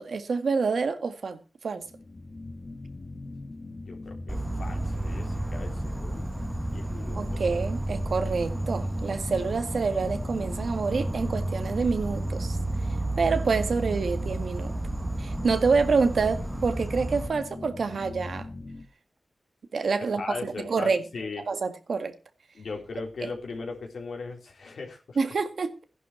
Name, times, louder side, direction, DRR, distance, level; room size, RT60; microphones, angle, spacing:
voice 1, 0.0-1.8 7.2-12.6 13.2-14.7 15.2-18.5 19.7-21.0 21.5-22.1 23.2-23.3 25.2-25.8, right 4 dB, 80° right, 1.8 m, -27 dB
sound 1, 1.8-18.9, left 2 dB, 50° left, 1.6 m, -41 dB
voice 2, 3.7-6.2 6.7-7.5 20.0-21.4 22.5-25.2, left 4 dB, 90° left, 3.8 m, -38 dB
Insect, 4.3-17.3, right 2 dB, 15° right, 1.3 m, -32 dB
14.5 x 11.0 x 4.6 m
cardioid pair, 65°, 0 cm